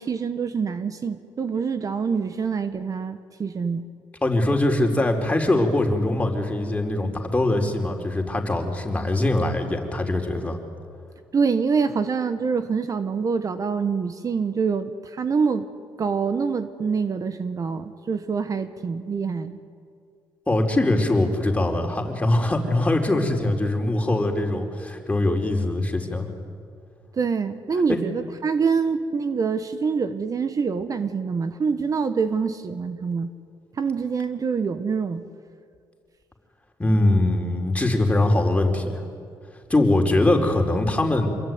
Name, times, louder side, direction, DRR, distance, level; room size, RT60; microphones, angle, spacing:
voice 1, 0.0-3.9 11.3-15.7 16.0-19.6 27.2-33.3 33.8-35.2, right 5 dB, 45° right, 10 dB, 1.4 m, -25 dB
voice 2, 4.2-10.6 20.5-26.3 27.9-28.0 36.8-39.0 39.7-41.3, left 2 dB, 15° left, 3 dB, 4.4 m, -22 dB
27.5 x 22.5 x 9.6 m, 2.2 s
cardioid pair, 90°, 8 cm